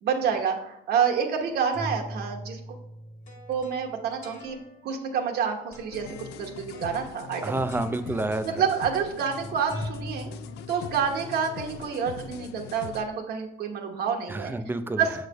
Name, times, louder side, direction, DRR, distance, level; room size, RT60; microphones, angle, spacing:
voice 1, 0.0-2.6 3.5-4.6 4.8-7.6 8.4-10.3 10.7-14.6 15.0-15.3, right 7 dB, 70° right, 3 dB, 1.0 m, -28 dB
sound 1, 1.4-5.0 5.7-6.2 6.7-7.4 7.7-11.2, equal, 45° left, 1.4 m, -41 dB
sound 2, 5.9-13.1, left 9 dB, 80° left, 0.4 m, -41 dB
voice 2, 7.4-8.6 14.3-15.2, right 2 dB, 10° right, 10 dB, 0.4 m, -29 dB
6.5 x 3.2 x 5.3 m, 0.84 s
cardioid pair, 110°, 17 cm